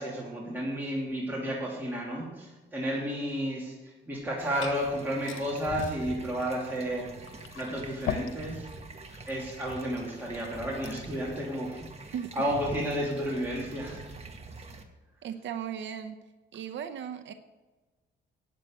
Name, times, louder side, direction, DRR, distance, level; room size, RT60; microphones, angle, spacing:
voice 1, 0.0-7.1 7.5-8.7 9.3-14.0, equal, 10° right, -5 dB, 3.0 m, -32 dB
Glass / Fill (with liquid), 4.1-11.2, left 8 dB, 80° left, 1.1 m, -43 dB
sound 1, 4.4-14.8, right 3 dB, 30° right, 1.7 m, -45 dB
voice 2, 15.2-16.2 16.5-17.3, right 8 dB, 70° right, 8 dB, 0.7 m, -36 dB
9.5 x 7.5 x 7.9 m, 1.2 s
cardioid pair, 90°, 20 cm